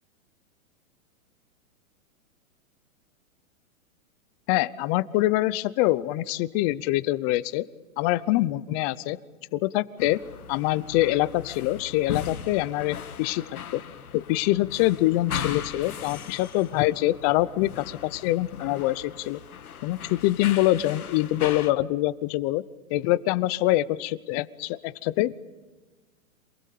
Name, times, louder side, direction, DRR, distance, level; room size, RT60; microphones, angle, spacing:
voice 1, 4.5-7.7 8.0-9.2 9.5-10.2 10.5-13.8 14.1-19.4 19.8-22.6 22.9-25.3, left 17 dB, 25° left, 18 dB, 0.7 m, -25 dB
sound 1, 10.0-21.7, left 8 dB, 90° left, 1.9 m, -38 dB
28.0 x 20.0 x 8.5 m, 1.3 s
hypercardioid pair, 145°, 42 cm